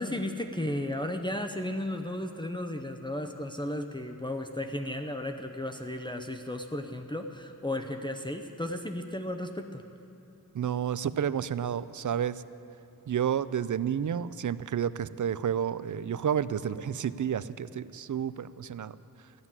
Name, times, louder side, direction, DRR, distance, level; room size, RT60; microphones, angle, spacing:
voice 1, 0.0-9.8, left 1 dB, 15° left, 4 dB, 0.7 m, -34 dB
voice 2, 10.5-12.4 13.1-19.0, right 8 dB, 60° right, 16 dB, 0.4 m, -30 dB
14.5 x 11.0 x 7.4 m, 2.7 s
wide cardioid pair, 85°, 35 cm